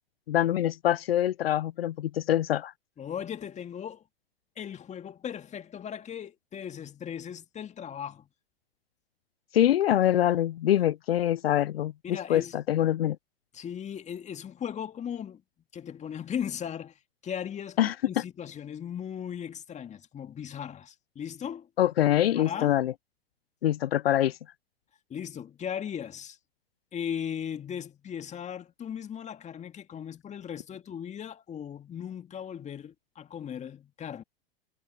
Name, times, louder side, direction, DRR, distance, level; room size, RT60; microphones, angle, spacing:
voice 1, 0.3-2.7 9.5-13.2 17.8-17.9 21.8-22.9 23.6-24.4, left 12 dB, 75° left, 0.7 m, -24 dB
voice 2, 3.0-4.0 4.6-8.3 12.0-12.6 13.5-15.4 15.7-16.9 17.2-21.7 22.2-22.8 25.1-26.4 26.9-34.2, left 8 dB, 25° left, 2.1 m, -37 dB
hypercardioid pair, 100°, 30 cm